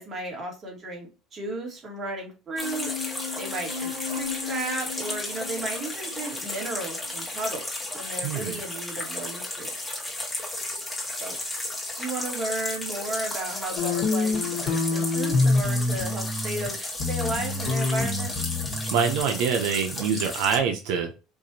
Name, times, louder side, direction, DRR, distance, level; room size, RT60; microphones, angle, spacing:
voice 1, 0.0-2.9 3.3-7.6 7.9-9.7 11.2-11.4 12.0-16.8 17.1-18.3, right 2 dB, 30° right, 0 dB, 1.7 m, -34 dB
sound 1, 2.6-20.6, left 1 dB, 10° left, 1.2 m, -34 dB
sound 2, 2.6-7.5, left 7 dB, 55° right, 2.0 m, -37 dB
voice 2, 8.2-8.6 18.9-21.1, right 6 dB, 80° right, 4 dB, 0.6 m, -25 dB
sound 3, 13.8-16.7 17.0-19.2, left 3 dB, 70° left, 1.3 m, -26 dB
4.6 x 2.5 x 2.7 m, 0.30 s
cardioid pair, 130°, 0 cm